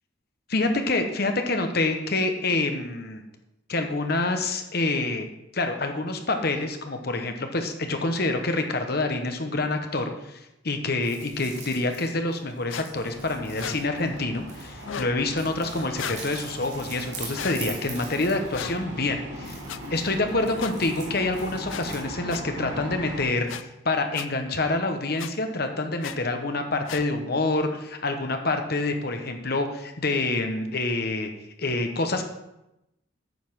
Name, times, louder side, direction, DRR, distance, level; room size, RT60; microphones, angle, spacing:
voice 1, 0.5-3.2 3.7-5.3 5.5-19.6 19.9-31.3 31.6-32.2, left 2 dB, 50° left, 5 dB, 1.0 m, -27 dB
sound 1, 11.0-14.9 15.4-18.9 19.4-22.1, right 4 dB, 35° right, 2.2 m, -44 dB
sound 2, 12.7-12.9 13.6-13.8 14.8-15.1 15.9-16.2 17.3-17.6 18.5-18.8 19.7-19.8 20.6-20.7 21.7-21.9 22.3-22.4 23.5-23.6 24.1-24.3 25.2-25.3 26.0-26.2 26.9-27.0, left 8 dB, 70° left, 0.5 m, -35 dB
sound 3, 12.9-23.2, equal, 55° right, 3.3 m, -39 dB
9.3 x 5.5 x 6.2 m, 0.90 s
head